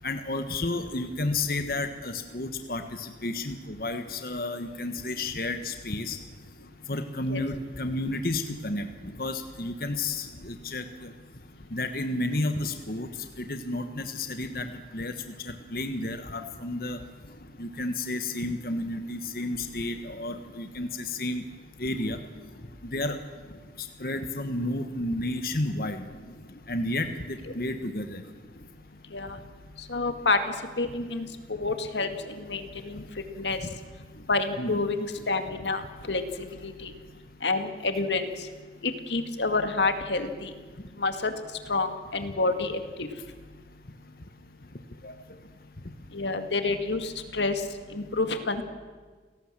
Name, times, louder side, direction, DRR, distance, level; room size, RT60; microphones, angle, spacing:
voice 1, 0.0-6.2 6.9-8.9 9.2-11.1 11.7-13.1 13.4-15.2 15.4-17.0 17.6-21.4 21.8-22.2 22.8-23.2 23.8-26.0 26.7-28.2 34.6-34.8 45.0-45.1, left 2 dB, 55° left, 7 dB, 1.4 m, -31 dB
voice 2, 29.9-30.4 30.8-33.0 33.4-33.6 34.3-35.8 36.1-36.2 36.6-36.9 37.4-38.3 38.8-40.5 41.0-41.4 41.7-43.1 46.1-47.6 47.9-48.6, left 3 dB, 90° left, 8 dB, 2.1 m, -28 dB
29.0 x 18.0 x 7.5 m, 1.4 s
head